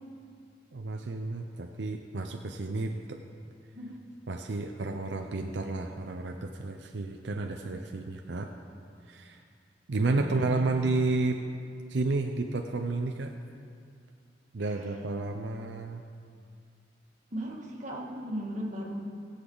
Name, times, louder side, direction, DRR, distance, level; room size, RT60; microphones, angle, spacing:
voice 1, 0.7-3.2 4.3-8.5 9.1-9.4 9.9-11.4 11.9-13.3 14.5-16.0, right 3 dB, 85° right, 4 dB, 0.6 m, -31 dB
voice 2, 10.1-10.7 14.6-14.9 17.3-19.0, equal, 45° right, -2 dB, 1.9 m, -37 dB
19.0 x 8.1 x 3.9 m, 2.4 s
head